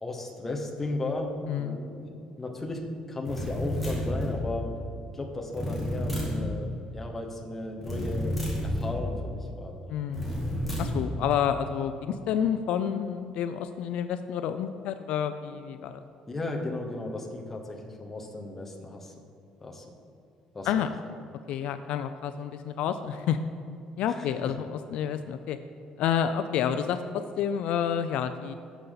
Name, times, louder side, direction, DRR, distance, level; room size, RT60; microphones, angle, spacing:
voice 1, 0.0-4.7 5.1-9.9 16.3-19.1 19.6-20.0 20.5-20.7 24.1-24.5, left 2 dB, 15° left, 1 dB, 1.0 m, -35 dB
voice 2, 1.5-1.8 9.9-10.3 10.8-16.0 20.6-20.9 21.5-23.4 24.0-25.6 26.0-28.5, left 8 dB, 70° left, 10 dB, 0.4 m, -29 dB
sound 1, 3.3-4.4 5.5-6.5 7.8-9.0 10.1-11.0, equal, 5° right, 2.1 m, -30 dB
12.5 x 6.9 x 4.0 m, 2.6 s
cardioid pair, 170°, 2 cm